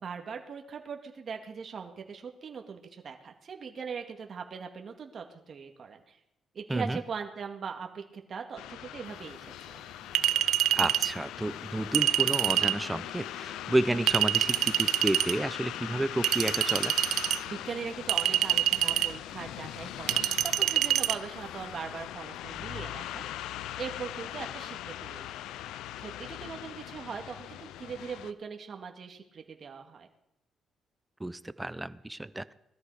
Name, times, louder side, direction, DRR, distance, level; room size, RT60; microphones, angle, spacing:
voice 1, 0.0-6.2 6.5-9.8 17.3-23.5 23.8-25.2 25.5-25.6 26.0-30.1, right 6 dB, 50° right, 4 dB, 2.1 m, -40 dB
sound 1, 8.6-28.3, left 12 dB, 90° left, 0.6 m, -40 dB
Chink clink, 10.1-11.1 11.9-12.8 14.1-15.3 16.2-17.4 18.1-19.1 20.1-21.2, right 12 dB, 80° right, 0.5 m, -26 dB
voice 2, 10.7-16.9 31.2-32.5, right 1 dB, 10° right, 15 dB, 0.8 m, -31 dB
19.5 x 13.5 x 5.0 m, 0.80 s
cardioid pair, 90°, 0 cm